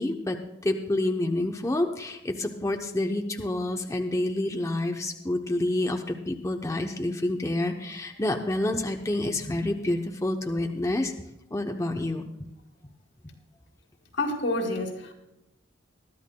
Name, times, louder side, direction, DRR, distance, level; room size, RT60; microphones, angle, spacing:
voice 1, 0.0-11.1 11.5-12.3, left 1 dB, 15° left, 3 dB, 0.7 m, -28 dB
voice 2, 14.1-15.1, left 2 dB, 85° left, 2 dB, 2.8 m, -28 dB
21.5 x 12.5 x 2.2 m, 0.89 s
head